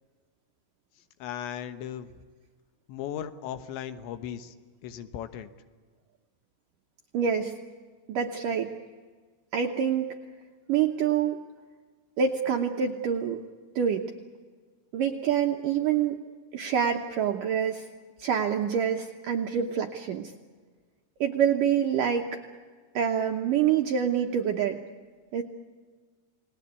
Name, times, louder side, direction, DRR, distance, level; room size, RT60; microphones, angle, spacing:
voice 1, 1.2-2.1 2.9-4.5 4.8-5.5, left 9 dB, 80° left, 10 dB, 3.4 m, -37 dB
voice 2, 7.1-7.6 8.1-8.8 9.5-10.1 10.7-11.4 12.2-13.4 13.8-14.1 14.9-16.2 16.5-17.9 18.2-20.3 21.2-22.4 22.9-24.8 25.3-25.4, right 8 dB, 75° right, 3 dB, 2.0 m, -26 dB
30.0 x 19.5 x 8.3 m, 1.5 s
omnidirectional pair, 5.2 m